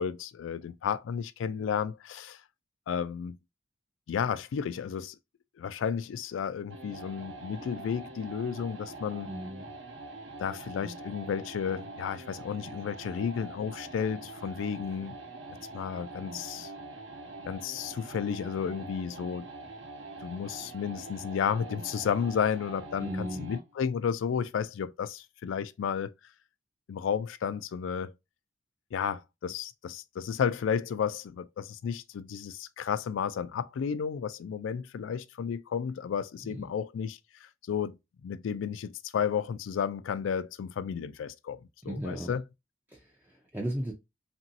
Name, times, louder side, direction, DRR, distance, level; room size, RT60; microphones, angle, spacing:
voice 1, 0.0-2.4 2.9-3.4 4.1-5.2 5.6-9.3 10.4-15.2 15.7-16.7 17.5-19.5 20.2-26.1 26.9-28.1 28.9-38.0 38.2-41.6 41.8-42.4, left 7 dB, 75° left, 0.3 m, -32 dB
sound 1, 6.7-23.7, right 2 dB, 65° right, 0.7 m, -44 dB
voice 2, 9.3-9.7 23.0-23.5 36.5-36.6 41.9-42.4 42.9-43.9, right 1 dB, 10° right, 0.4 m, -36 dB
2.9 x 2.6 x 2.6 m
head